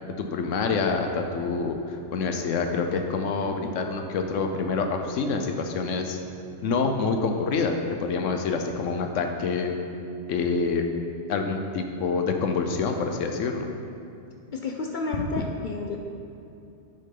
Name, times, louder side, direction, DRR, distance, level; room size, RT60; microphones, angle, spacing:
voice 1, 0.2-6.2 6.6-9.8 10.3-10.8 11.3-13.7, left 4 dB, 80° left, 5 dB, 1.0 m, -27 dB
voice 2, 14.5-16.0, left 3 dB, 60° left, 2 dB, 0.5 m, -31 dB
8.3 x 6.5 x 3.8 m, 2.7 s
omnidirectional pair, 1.3 m